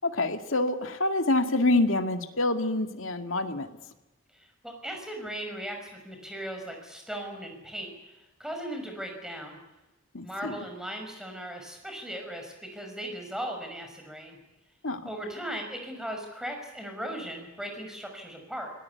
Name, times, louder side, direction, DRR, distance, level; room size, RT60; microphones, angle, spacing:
voice 1, 0.0-3.7 10.1-10.6 14.8-15.0, left 2 dB, 80° left, 6 dB, 2.0 m, -26 dB
voice 2, 4.3-9.6 10.2-14.4 15.0-18.7, right 1 dB, 5° right, 4 dB, 5.8 m, -38 dB
26.5 x 18.5 x 8.4 m, 1.0 s
head